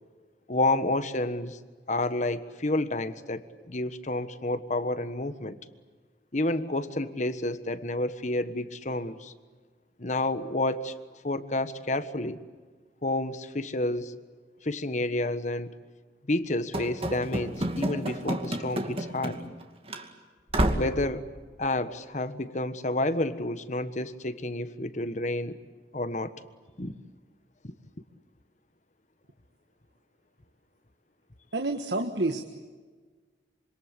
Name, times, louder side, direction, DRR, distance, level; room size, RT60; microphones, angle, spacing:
voice 1, 0.5-1.6 1.9-5.6 6.3-9.3 10.0-10.9 11.2-12.4 13.0-14.2 14.6-15.7 16.3-19.4 20.7-21.3 21.6-25.6 25.9-26.3 26.8-26.9 27.6-27.7, left 2 dB, 45° left, 12 dB, 1.4 m, -30 dB
Run / Slam, 16.7-19.6 19.9-20.0 20.5-21.0, right 1 dB, 35° right, 2.4 m, -29 dB
voice 2, 31.5-32.4, right 2 dB, 75° right, 6 dB, 1.6 m, -28 dB
26.5 x 26.0 x 8.3 m, 1.4 s
head